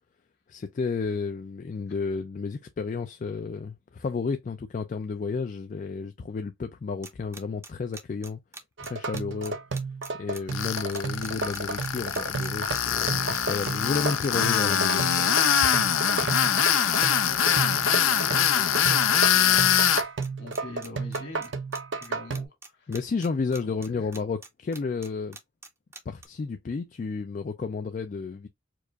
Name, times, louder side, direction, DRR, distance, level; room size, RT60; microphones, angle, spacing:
voice 1, 0.5-8.4 8.8-9.6 10.1-15.3 15.8-15.9 22.9-25.4 26.1-28.5, left 4 dB, 40° left, 0.3 m, -32 dB
sound 1, 7.0-26.3, right 3 dB, 15° right, 0.5 m, -43 dB
sound 2, 8.8-22.5, right 4 dB, 65° right, 0.7 m, -33 dB
Tools, 10.5-20.0, left 9 dB, 90° left, 0.6 m, -23 dB
voice 2, 16.8-20.1 20.4-21.5 22.0-22.9 23.9-24.1, left 2 dB, 60° left, 1.8 m, -43 dB
4.6 x 2.4 x 2.3 m
head